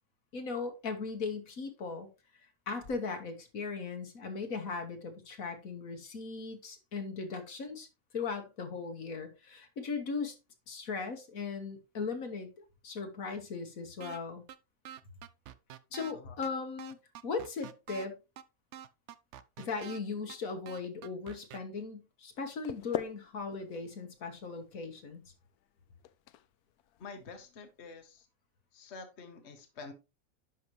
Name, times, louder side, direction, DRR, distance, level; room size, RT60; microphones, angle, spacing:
voice 1, 0.3-2.1 2.7-7.9 8.1-10.4 10.7-14.4 15.9-17.0 17.2-18.2 19.6-25.2, left 4 dB, 65° left, 1.7 m, -38 dB
sound 1, 14.0-14.2 14.5-14.6 14.9-16.1 16.4-16.5 16.8-18.1 18.4-18.5 18.7-20.0 20.3-20.4 20.7-21.6, right 10 dB, 60° right, 0.8 m, -46 dB
sound 2, 22.4-28.2, left 12 dB, 85° left, 1.1 m, -45 dB
voice 2, 27.0-28.3 28.7-29.9, left 4 dB, 50° left, 1.4 m, -48 dB
10.5 x 5.7 x 3.1 m
omnidirectional pair, 1.5 m